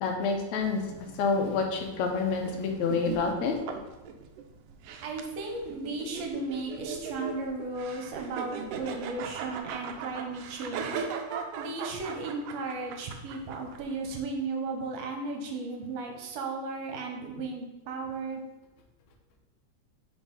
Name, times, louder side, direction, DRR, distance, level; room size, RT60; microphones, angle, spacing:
voice 1, 0.0-0.8 1.2-3.5, left 4 dB, 75° left, 3 dB, 2.0 m, -28 dB
sound 1, 0.6-14.2, right 6 dB, 85° right, 1.4 m, -39 dB
voice 2, 5.0-11.1 11.6-18.4, right 3 dB, 70° right, 2 dB, 1.9 m, -35 dB
4.9 x 3.9 x 5.2 m, 1.0 s
omnidirectional pair, 3.4 m